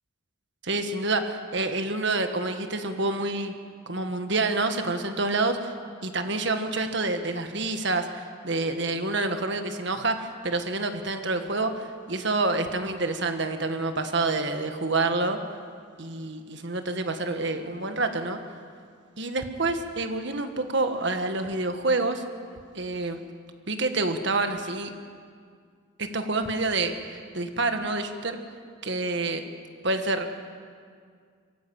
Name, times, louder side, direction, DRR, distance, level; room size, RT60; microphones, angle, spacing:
voice 1, 0.6-3.5 3.9-5.7 6.0-15.4 16.0-18.4 19.2-22.2 22.7-23.2 23.7-24.9 26.0-28.4 28.8-29.4 29.8-30.3, right 3 dB, 55° right, 7 dB, 1.6 m, -28 dB
24.0 x 14.0 x 8.7 m, 2.1 s
head